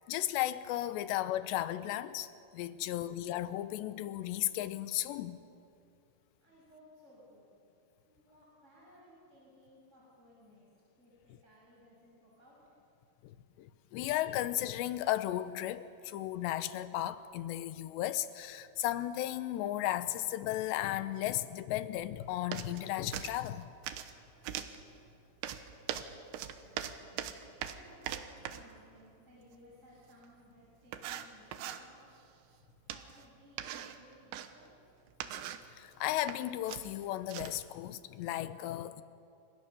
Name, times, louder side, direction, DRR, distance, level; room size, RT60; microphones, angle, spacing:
voice 1, 0.1-2.3 2.5-5.4 13.2-23.7 35.8-39.0, left 13 dB, 80° left, 3.0 m, -35 dB
voice 2, 2.6-3.1 6.4-7.5 8.0-10.7 11.0-12.6 26.6-32.0 32.9-34.7, equal, 15° right, 6.6 m, -60 dB
sound 1, 22.5-22.9 23.1-24.1 24.4-24.8 25.4-28.7 30.2-30.3 30.9-31.8 32.9-33.2 33.6-34.5 35.1-35.7 36.1-36.4 36.7-37.6, right 10 dB, 90° right, 3.4 m, -41 dB
29.0 x 26.0 x 6.9 m
omnidirectional pair, 5.1 m